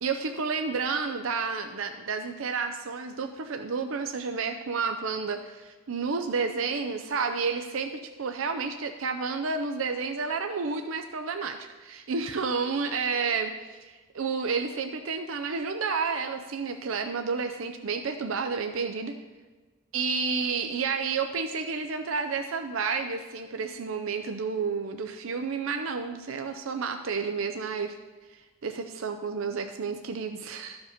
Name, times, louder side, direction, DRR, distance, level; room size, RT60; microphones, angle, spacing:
voice 1, 0.0-7.9 8.2-19.1 19.9-28.0 28.3-30.8, right 5 dB, 65° right, 6 dB, 0.5 m, -30 dB
13.5 x 5.1 x 5.0 m, 1.3 s
head